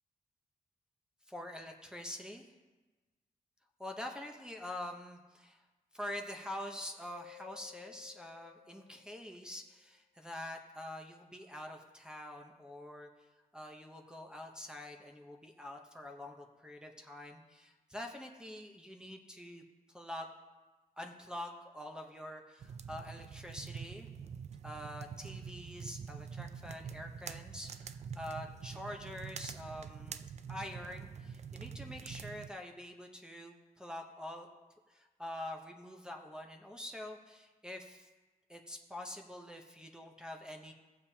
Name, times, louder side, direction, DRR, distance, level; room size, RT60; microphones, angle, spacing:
voice 1, 1.3-2.5 3.8-5.6 5.9-13.3 13.5-19.6 19.9-20.3 21.0-24.1 24.6-30.2 30.5-34.5 34.9-38.1 38.5-40.7, left 1 dB, 5° right, 0 dB, 0.8 m, -46 dB
Mallet percussion, 7.0-9.6, left 18 dB, 70° left, 1.4 m, -57 dB
sound 1, 22.6-32.5, right 6 dB, 45° right, 0.4 m, -46 dB
17.5 x 7.1 x 2.8 m, 1.2 s
wide cardioid pair, 135°, 15 cm